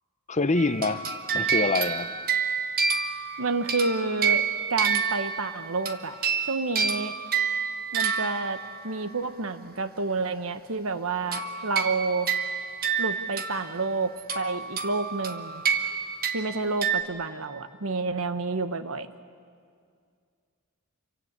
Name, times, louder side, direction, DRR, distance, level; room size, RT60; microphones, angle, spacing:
voice 1, 0.3-1.0 1.3-2.1, left 3 dB, 30° left, 11 dB, 0.8 m, -25 dB
sound 1, 0.6-9.1 11.3-13.9 14.2-17.0, right 6 dB, 40° right, 1.3 m, -29 dB
voice 2, 3.4-6.1 6.5-7.2 7.9-8.6 8.8-12.3 13.0-15.6 16.3-19.1, right 3 dB, 65° right, 10 dB, 1.2 m, -29 dB
28.5 x 24.0 x 8.3 m, 2.2 s
head